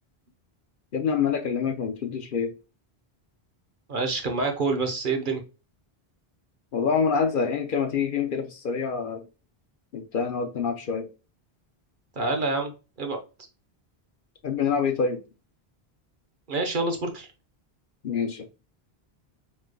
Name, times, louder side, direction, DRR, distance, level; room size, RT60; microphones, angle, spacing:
voice 1, 0.9-2.5 6.7-9.2 9.9-11.1 14.4-15.2 18.0-18.5, left 6 dB, 60° left, 0.8 m, -26 dB
voice 2, 3.9-5.4 12.2-12.7 13.0-13.2 16.5-17.3, right 3 dB, 55° right, 0.9 m, -27 dB
4.8 x 3.2 x 2.2 m
omnidirectional pair, 1.1 m